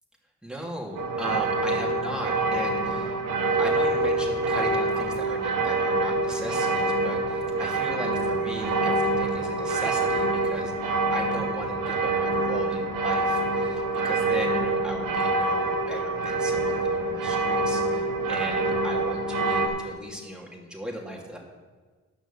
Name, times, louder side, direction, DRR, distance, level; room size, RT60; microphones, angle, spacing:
voice 1, 0.4-3.2 3.6-21.4, equal, ahead, -2 dB, 2.9 m, -37 dB
sound 1, 1.0-19.7, right 2 dB, 85° right, 1.2 m, -26 dB
10.5 x 6.1 x 7.3 m, 1.4 s
supercardioid pair, 55°, 33 cm